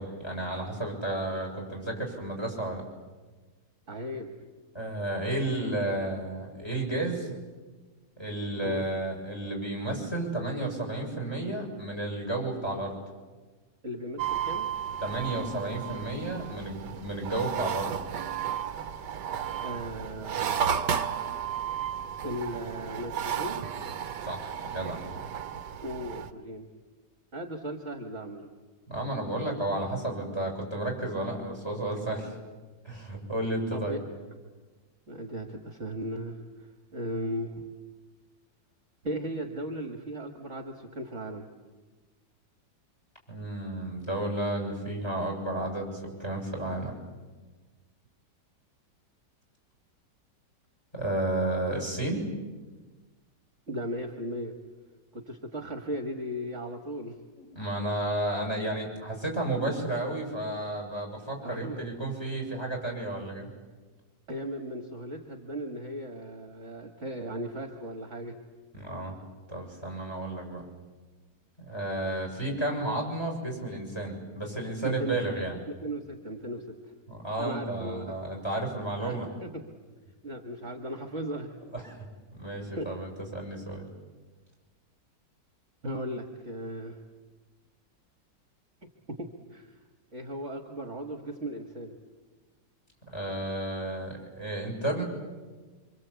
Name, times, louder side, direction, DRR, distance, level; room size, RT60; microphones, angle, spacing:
voice 1, 0.0-2.8 4.7-7.3 8.2-13.0 15.0-17.9 24.2-25.0 28.9-32.4 32.8-34.0 43.3-47.0 50.9-52.2 57.3-63.5 68.7-69.2 69.5-70.6 71.6-75.6 77.1-79.3 81.7-82.1 82.3-83.9 93.1-95.0, right 2 dB, 15° left, 1 dB, 7.2 m, -32 dB
voice 2, 3.9-4.4 8.6-8.8 13.8-14.7 19.6-20.7 22.2-23.6 25.8-26.7 27.3-28.5 33.7-34.0 35.1-36.4 36.9-37.6 39.0-41.5 53.7-54.5 55.1-57.2 61.4-61.8 64.3-68.3 74.8-75.2 75.7-76.6 77.4-78.1 79.0-79.6 80.2-81.5 82.8-82.9 85.8-87.0 89.1-89.7 90.1-92.0, equal, 40° right, 4 dB, 2.1 m, -36 dB
sound 1, 14.2-26.3, right 8 dB, 70° right, 1.6 m, -33 dB
27.0 x 26.0 x 8.4 m, 1.3 s
omnidirectional pair, 1.9 m